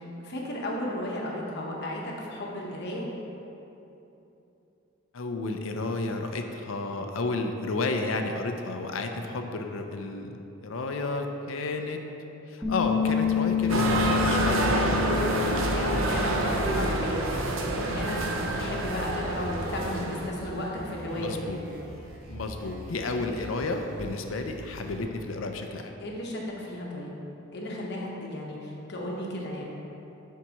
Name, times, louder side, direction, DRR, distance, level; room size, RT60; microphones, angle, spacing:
voice 1, 0.0-3.1 15.7-17.2 17.5-21.5 26.0-27.2 27.5-29.6, left 1 dB, 60° left, -2 dB, 1.1 m, -34 dB
voice 2, 5.1-12.1 12.5-15.1 21.1-21.6 22.3-26.0, left 3 dB, 75° left, 4 dB, 0.5 m, -32 dB
Bass guitar, 12.6-16.9 17.2-18.9, left 8 dB, 5° right, 1.1 m, -30 dB
sound 1, 13.0-25.0, equal, 50° right, 1.5 m, -44 dB
sound 2, 13.7-20.3, right 1 dB, 75° right, 0.6 m, -27 dB
10.5 x 4.6 x 3.0 m, 3.0 s
head